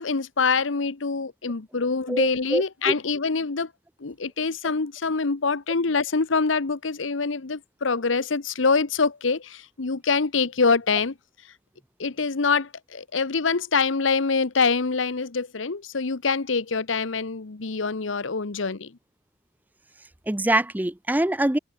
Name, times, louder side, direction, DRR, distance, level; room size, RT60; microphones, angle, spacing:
voice 1, 0.0-3.7 4.0-11.1 12.0-18.9, left 4 dB, 90° left, 1.0 m, -25 dB
voice 2, 2.1-2.9 20.3-21.6, right 1 dB, 10° right, 0.4 m, -24 dB
head